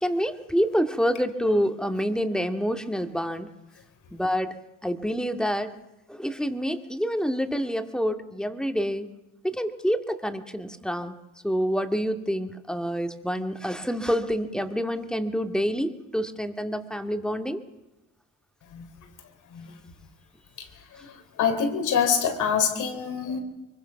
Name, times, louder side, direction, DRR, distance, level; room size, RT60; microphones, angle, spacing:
voice 1, 0.0-3.5 4.1-4.5 4.8-5.7 6.1-9.1 9.4-11.1 11.4-17.6, equal, ahead, 7 dB, 2.3 m, -27 dB
voice 2, 21.4-23.4, left 7 dB, 80° left, 6 dB, 4.3 m, -25 dB
24.0 x 22.5 x 6.0 m, 0.99 s
cardioid pair, 90°, 30 cm